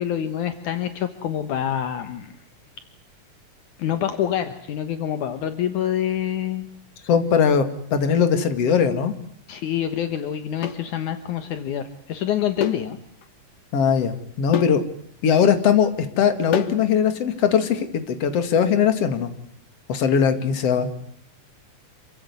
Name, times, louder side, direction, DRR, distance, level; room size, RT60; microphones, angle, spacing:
voice 1, 0.0-2.3 3.8-6.7 9.5-13.0, left 10 dB, 70° left, 10 dB, 2.7 m, -26 dB
voice 2, 7.1-9.1 13.7-14.8 15.2-15.9 16.2-19.3 19.9-20.9, left 7 dB, 50° left, 9 dB, 3.0 m, -20 dB
sound 1, 8.7-8.9 10.6-10.9 12.6-12.9 13.2-13.3 14.5-14.8 16.5-16.9, left 9 dB, 85° left, 3.1 m, -28 dB
28.0 x 16.0 x 9.5 m, 0.70 s
omnidirectional pair, 3.7 m